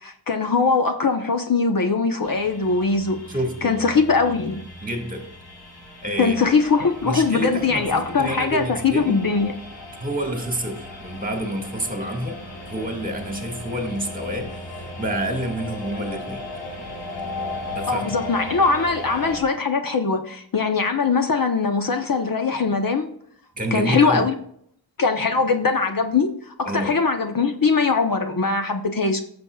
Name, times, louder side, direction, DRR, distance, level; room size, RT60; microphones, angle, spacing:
voice 1, 0.0-3.2 3.6-4.6 6.2-9.5 17.9-23.1 23.7-24.3 25.0-29.2, left 4 dB, 50° left, 0.9 m, -21 dB
sound 1, 2.2-19.4, left 2 dB, 70° left, 3.1 m, -37 dB
voice 2, 3.3-3.8 4.8-5.3 6.0-6.6 7.0-9.3 10.0-16.4 17.7-18.1 23.6-24.3 26.6-27.0, right 1 dB, 20° right, 1.8 m, -28 dB
15.5 x 7.0 x 2.3 m
wide cardioid pair, 145°, 45 cm